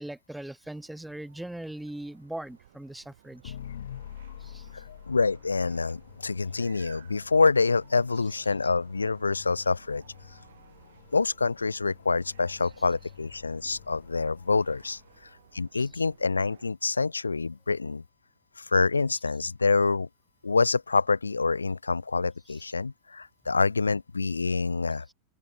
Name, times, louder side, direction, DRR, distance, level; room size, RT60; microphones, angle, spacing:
voice 1, 0.0-3.6 4.4-4.8 15.7-16.0 25.1-25.2, right 1 dB, 5° right, 0.8 m, -40 dB
sound 1, 0.6-16.7, right 12 dB, 60° right, 1.7 m, -57 dB
sound 2, 3.4-15.6, left 10 dB, 65° left, 1.1 m, -48 dB
voice 2, 4.7-10.0 11.1-15.0 15.5-18.0 18.6-20.1 20.4-25.1, left 4 dB, 80° left, 0.3 m, -26 dB
open air
figure-of-eight pair, 90°, 0 cm